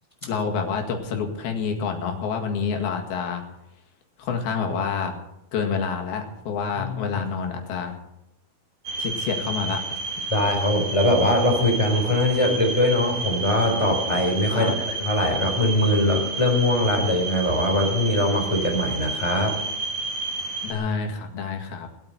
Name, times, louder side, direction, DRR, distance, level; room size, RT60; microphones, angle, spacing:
voice 1, 0.2-3.4 4.2-5.1 5.5-8.0 9.0-9.8 14.5-14.8 20.6-21.9, left 5 dB, 75° left, 3 dB, 3.8 m, -28 dB
voice 2, 6.7-7.0 10.3-19.6, left 1 dB, 10° left, 1 dB, 3.5 m, -22 dB
sound 1, 8.9-20.7, right 3 dB, 55° right, 3.5 m, -31 dB
18.5 x 8.9 x 7.7 m, 0.88 s
omnidirectional pair, 4.4 m